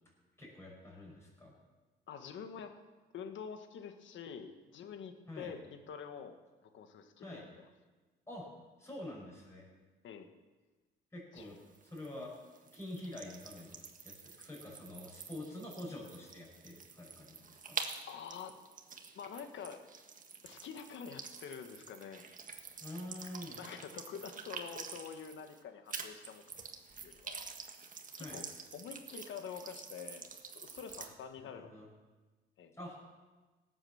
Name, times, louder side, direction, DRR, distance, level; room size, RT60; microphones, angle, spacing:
voice 1, 0.4-1.5 5.3-5.5 7.2-7.4 8.3-8.5 8.8-9.6 11.1-11.6 11.8-12.3 12.7-17.8 22.8-23.6 28.2-28.4 31.0-31.1 31.4-31.8 32.8-33.0, left 1 dB, 15° left, -5 dB, 6.2 m, -47 dB
voice 2, 2.1-2.7 3.1-6.4 6.6-7.4 10.0-10.3 11.3-11.5 18.1-18.5 19.1-19.8 20.4-22.2 23.6-26.4 27.0-27.5 28.2-28.5 28.7-30.3 30.5-31.9 32.6-32.7, left 7 dB, 75° left, 7 dB, 1.6 m, -47 dB
sound 1, 11.4-25.6 25.9-31.1, right 5 dB, 40° right, 1.6 m, -48 dB
18.0 x 8.0 x 7.2 m, 1.3 s
cardioid pair, 90°, 20 cm